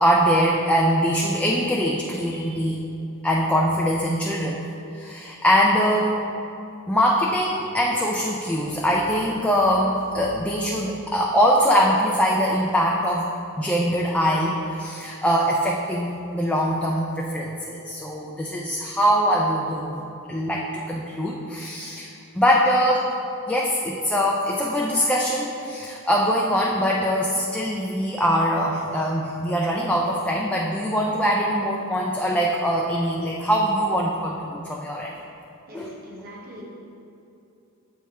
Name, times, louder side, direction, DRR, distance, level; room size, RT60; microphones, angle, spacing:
voice 1, 0.0-2.8 3.2-4.6 4.9-6.2 6.9-13.3 13.6-20.0 20.3-22.1 22.3-23.1 23.5-35.1 35.7-35.9, equal, 5° left, -3 dB, 0.4 m, -22 dB
voice 2, 35.7-36.6, right 1 dB, 45° right, -4 dB, 1.2 m, -42 dB
7.5 x 3.5 x 4.2 m, 2.7 s
head